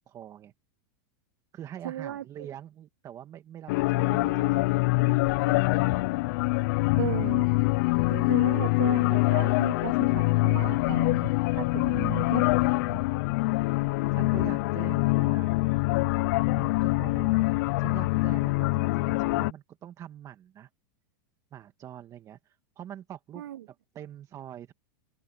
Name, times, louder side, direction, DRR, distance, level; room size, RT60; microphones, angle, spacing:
voice 1, 0.1-0.5 1.5-6.0 6.4-6.5 14.1-15.6 16.3-20.7 21.5-24.7, right 10 dB, 30° right, 2.0 m, -44 dB
voice 2, 1.8-2.5 4.1-4.7 7.0-7.5 8.1-13.0 23.4-23.6, right 12 dB, 85° right, 2.6 m, -36 dB
sound 1, 3.7-19.5, left 23 dB, 60° left, 0.5 m, -25 dB
supercardioid pair, 135°, 11 cm